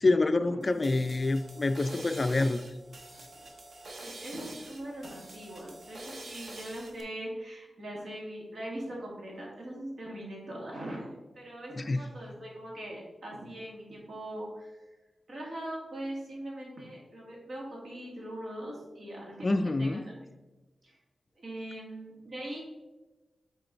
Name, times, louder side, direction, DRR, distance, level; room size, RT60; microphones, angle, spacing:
voice 1, 0.0-2.7 11.8-12.0 19.4-20.0, left 2 dB, 35° left, 11 dB, 0.3 m, -27 dB
sound 1, 0.6-7.0, right 2 dB, 45° right, 0.9 m, -47 dB
voice 2, 4.0-14.8 15.3-19.5 19.8-20.3 20.8-21.0 21.4-22.6, right 1 dB, 70° right, -3 dB, 2.1 m, -41 dB
6.7 x 4.1 x 3.9 m, 1.1 s
wide cardioid pair, 135°, 0 cm